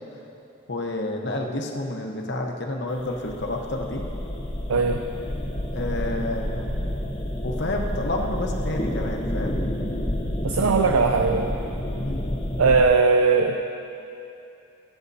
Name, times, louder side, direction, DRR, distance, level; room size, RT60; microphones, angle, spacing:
voice 1, 0.7-4.1 5.7-6.7 7.4-9.6 12.0-12.2, left 1 dB, 55° left, 1 dB, 1.1 m, -29 dB
sound 1, 2.9-12.9, left 1 dB, 20° left, 0.8 m, -29 dB
voice 2, 4.7-5.0 10.4-11.5 12.6-13.6, right 4 dB, 85° right, 5 dB, 0.5 m, -19 dB
23.0 x 8.0 x 2.8 m, 2.7 s
head